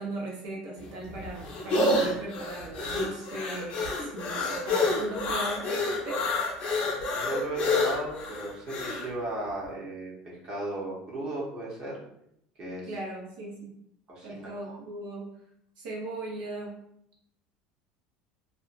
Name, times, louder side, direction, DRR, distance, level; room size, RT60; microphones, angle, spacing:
voice 1, 0.0-6.2 12.9-13.7 14.2-15.3 15.8-16.8, right 2 dB, 80° right, -3 dB, 0.9 m, -38 dB
sound 1, 0.8-9.1, left 2 dB, 40° left, 0.6 m, -28 dB
voice 2, 7.1-11.9 12.6-12.9 14.1-14.8, right 1 dB, 35° right, -5 dB, 0.9 m, -36 dB
2.7 x 2.2 x 2.5 m, 0.76 s
cardioid pair, 155°, 3 cm